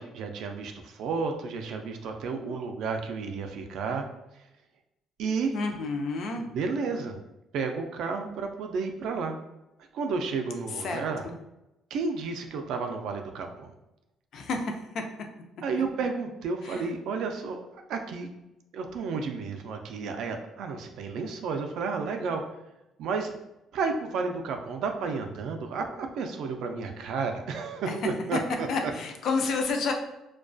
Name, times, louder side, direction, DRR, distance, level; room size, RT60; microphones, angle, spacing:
voice 1, 0.0-4.0 5.2-5.5 6.3-7.2 7.5-9.4 9.9-11.2 11.9-13.7 15.6-18.3 18.7-22.4 23.0-23.3 23.7-28.9, right 4 dB, 65° right, 4 dB, 0.3 m, -32 dB
voice 2, 5.5-6.5 10.8-11.4 14.3-15.0 16.6-16.9 27.9-28.0 28.3-28.4 28.7-29.9, left 4 dB, 50° left, 4 dB, 0.3 m, -30 dB
2.3 x 2.2 x 2.5 m, 0.91 s
cardioid pair, 155°, 0 cm